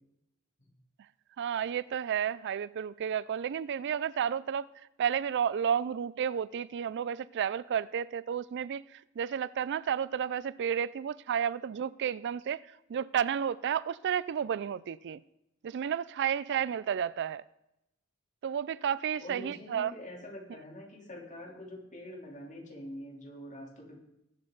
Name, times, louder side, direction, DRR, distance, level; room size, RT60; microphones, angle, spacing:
voice 1, 1.4-4.7 5.0-15.2 15.6-17.4 18.4-19.9, right 8 dB, 55° right, 0.4 m, -32 dB
voice 2, 19.2-24.0, left 1 dB, 35° left, 3.3 m, -45 dB
20.5 x 7.8 x 3.9 m
head